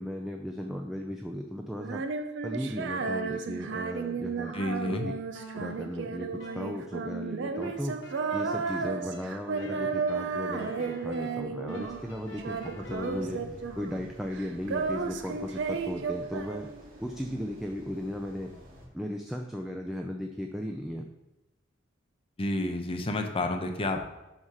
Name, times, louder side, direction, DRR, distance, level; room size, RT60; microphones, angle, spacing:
voice 1, 0.0-2.0 2.4-4.5 4.9-5.1 5.5-6.3 6.5-8.0 8.3-16.7 17.0-18.5 18.9-21.1, equal, ahead, 1 dB, 0.4 m, -36 dB
Female singing, 1.8-12.1 12.4-14.1 14.3-17.0, right 4 dB, 65° right, 0.5 m, -33 dB
voice 2, 4.5-5.1 22.4-24.0, left 1 dB, 30° left, 4 dB, 0.7 m, -30 dB
sound 1, 5.3-7.2 7.6-13.4, equal, 70° left, 1.2 m, -47 dB
sound 2, 11.8-18.9, equal, 45° right, 2.1 m, -50 dB
4.9 x 4.8 x 5.6 m, 0.99 s
head